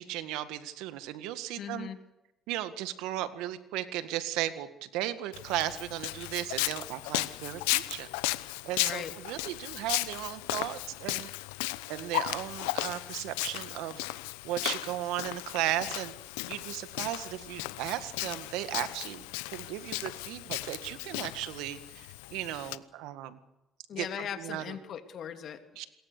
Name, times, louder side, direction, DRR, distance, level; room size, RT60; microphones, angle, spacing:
voice 1, 0.0-1.9 2.5-8.1 8.6-11.3 11.9-14.1 14.4-16.1 16.5-23.4 24.0-24.1 24.4-24.6 25.8-25.9, right 13 dB, 80° right, 11 dB, 1.8 m, -36 dB
voice 2, 1.6-2.0 8.8-9.1 23.9-25.6, left 8 dB, 65° left, 7 dB, 3.1 m, -38 dB
Walk footsteps, 5.3-22.8, left 20 dB, 90° left, 0.9 m, -36 dB
27.5 x 22.0 x 6.8 m, 0.95 s
hypercardioid pair, 60°, 0 cm